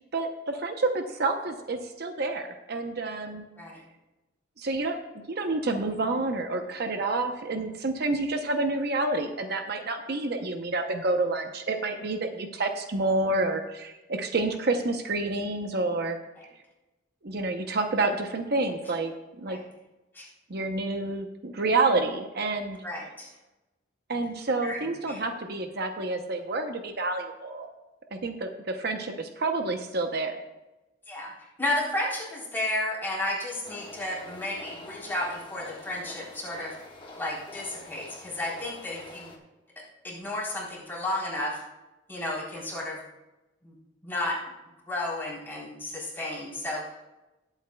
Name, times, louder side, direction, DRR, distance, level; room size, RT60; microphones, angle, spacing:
voice 1, 0.1-3.4 4.6-5.0 5.3-16.2 17.2-19.6 20.5-22.8 24.1-27.7 28.1-30.4, right 2 dB, 60° right, 5 dB, 0.8 m, -29 dB
voice 2, 22.8-23.3 24.6-25.2 31.1-31.3 31.6-36.7 37.2-39.3 40.0-41.6 42.1-43.0 43.6-43.7 44.0-44.4 44.9-47.0, left 1 dB, 10° left, -6 dB, 3.8 m, -32 dB
sound 1, 33.6-39.4, left 2 dB, 30° left, 1.4 m, -46 dB
19.5 x 8.2 x 2.3 m, 1.0 s
head